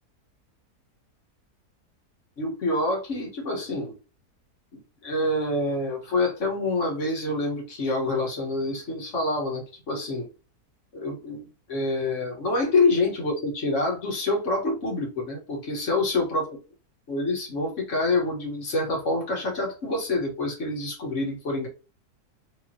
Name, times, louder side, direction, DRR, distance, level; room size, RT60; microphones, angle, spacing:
voice 1, 2.4-3.9 4.7-10.3 10.9-16.6 17.1-21.7, left 2 dB, 50° left, -1 dB, 1.8 m, -27 dB
5.3 x 3.2 x 2.9 m, 0.33 s
omnidirectional pair, 1.7 m